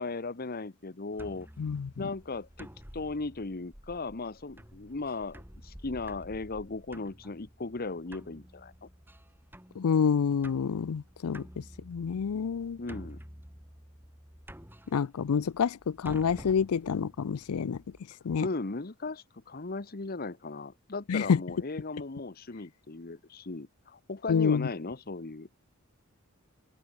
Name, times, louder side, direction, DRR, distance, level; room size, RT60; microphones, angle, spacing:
voice 1, 0.0-1.5 2.0-2.7 2.9-8.9 12.8-13.2 18.4-25.5, left 3 dB, 45° left, 1.0 m, -37 dB
sound 1, 1.1-18.0, equal, 10° right, 6.6 m, -50 dB
voice 2, 1.6-2.0 9.8-11.4 11.9-12.8 14.9-17.8 18.2-18.5 21.1-21.4 24.3-24.7, left 6 dB, 90° left, 0.4 m, -28 dB
head